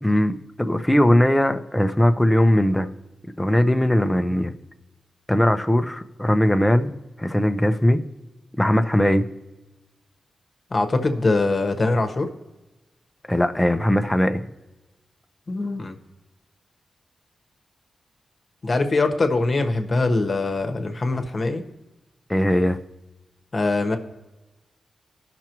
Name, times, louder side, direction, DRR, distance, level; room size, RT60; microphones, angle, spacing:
voice 1, 0.0-2.9 3.4-4.5 5.3-6.9 7.2-8.0 8.6-9.2 13.3-14.4 22.3-22.8, left 1 dB, 10° left, 8 dB, 0.7 m, -19 dB
voice 2, 10.7-12.3 15.5-15.9 18.6-21.6 23.5-24.0, left 3 dB, 40° left, 6 dB, 1.2 m, -22 dB
17.5 x 6.0 x 3.0 m, 1.1 s
cardioid pair, 80°, 0 cm